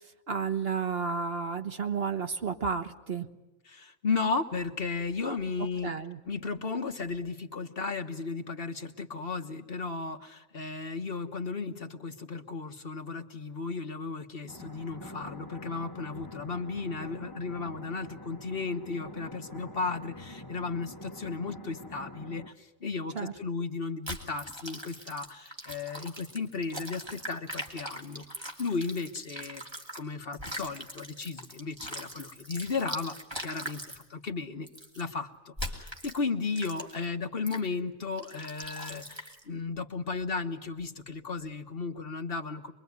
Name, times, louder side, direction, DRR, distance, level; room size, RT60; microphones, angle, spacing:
voice 1, 0.3-3.3 5.8-6.2 23.1-23.3, right 5 dB, 55° right, 7 dB, 1.5 m, -31 dB
voice 2, 3.6-5.9 6.3-34.7 34.9-42.7, left 4 dB, 50° left, 6 dB, 1.5 m, -35 dB
sound 1, 14.5-22.5, left 1 dB, 20° left, 1.1 m, -46 dB
sound 2, 24.1-30.0 30.3-34.0 34.7-35.0 35.6-36.2 36.6-37.0 37.5-37.7 38.2-39.4, equal, 20° right, 2.9 m, -41 dB
25.5 x 22.5 x 9.5 m, 1.0 s
omnidirectional pair, 1.3 m